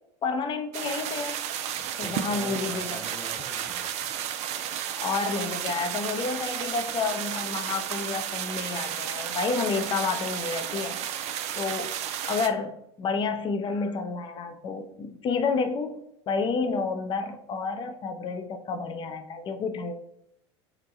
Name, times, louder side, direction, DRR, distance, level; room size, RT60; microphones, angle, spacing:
voice 1, 0.2-1.5 2.0-3.0 5.0-11.0 11.6-11.9 12.3-19.9, left 4 dB, 35° left, 6 dB, 0.5 m, -30 dB
sound 1, 0.7-12.5, right 10 dB, 50° right, 0.4 m, -32 dB
voice 2, 1.8-4.1, right 1 dB, 5° right, -6 dB, 1.0 m, -44 dB
2.9 x 2.2 x 3.9 m, 0.79 s
hypercardioid pair, 90°, 15 cm